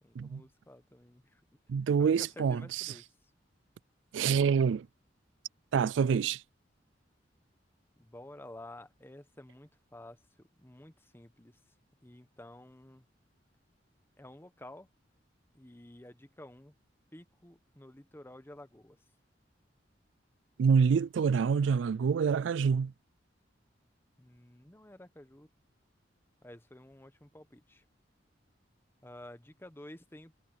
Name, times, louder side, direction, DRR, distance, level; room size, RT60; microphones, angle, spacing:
voice 1, 0.0-1.6 2.0-3.1 8.0-11.6 12.0-13.1 14.2-14.9 15.5-16.7 17.1-19.0 24.2-25.5 26.4-27.8 29.0-30.4, left 1 dB, 10° left, 1.2 m, -51 dB
voice 2, 1.7-2.6 4.1-4.9 5.7-6.4 20.6-22.9, right 6 dB, 85° right, 0.3 m, -26 dB
head